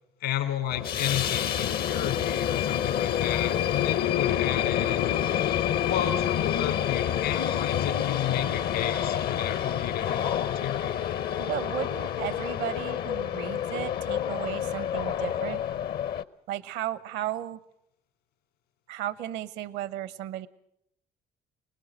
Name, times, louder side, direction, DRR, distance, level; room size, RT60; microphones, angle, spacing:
voice 1, 0.2-5.2 5.8-11.1, left 11 dB, 80° left, 7 dB, 3.4 m, -32 dB
sound 1, 0.7-16.2, left 10 dB, 65° left, 0.9 m, -28 dB
voice 2, 11.4-15.6 16.5-17.6 18.9-20.5, right 12 dB, 75° right, 18 dB, 0.9 m, -34 dB
24.5 x 20.0 x 6.4 m, 0.75 s
hypercardioid pair, 60°, 18 cm